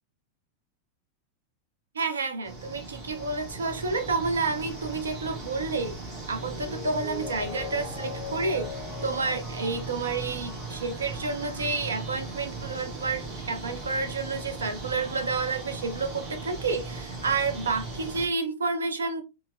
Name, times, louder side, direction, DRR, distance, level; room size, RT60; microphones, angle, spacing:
voice 1, 1.9-6.0 6.3-8.7 9.0-19.2, right 4 dB, 70° right, 0.5 m, -30 dB
sound 1, 2.4-18.3, right 3 dB, 35° right, 1.1 m, -38 dB
Mallet percussion, 6.5-12.0 12.4-12.5, left 7 dB, 15° left, 0.7 m, -42 dB
4.4 x 2.0 x 2.3 m
figure-of-eight pair, 90°, 0 cm